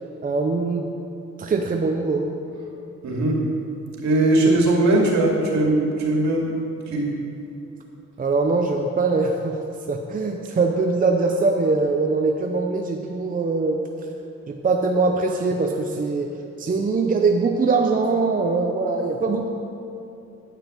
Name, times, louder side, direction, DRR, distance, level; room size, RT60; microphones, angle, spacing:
voice 1, 0.2-0.9 1.4-2.3 8.2-9.6 9.9-13.8 14.5-16.3 16.6-19.5, right 3 dB, 30° right, 2 dB, 0.7 m, -22 dB
voice 2, 3.0-3.4 4.0-6.5 6.9-7.0, right 2 dB, 65° right, -2 dB, 2.4 m, -19 dB
9.3 x 5.8 x 7.0 m, 2.8 s
cardioid pair, 90°, 30 cm